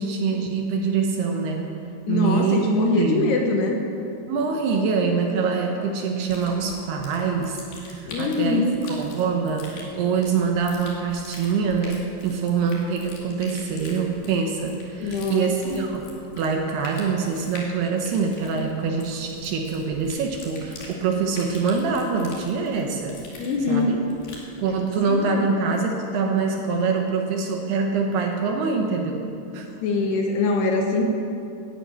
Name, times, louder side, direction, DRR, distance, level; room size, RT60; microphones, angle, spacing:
voice 1, 0.0-1.7 2.1-2.7 3.0-3.3 4.3-16.0 16.4-23.2 23.7-24.0 24.6-29.2 29.5-29.7, right 5 dB, 70° right, 2 dB, 2.7 m, -25 dB
voice 2, 2.1-3.8 8.1-8.8 15.0-15.5 15.8-15.9 23.4-24.0 25.1-25.5 29.8-31.0, left 3 dB, 70° left, 2 dB, 2.7 m, -23 dB
sound 1, 6.3-24.5, left 2 dB, 55° left, 3.7 m, -44 dB
12.5 x 10.5 x 8.7 m, 2.6 s
omnidirectional pair, 5.5 m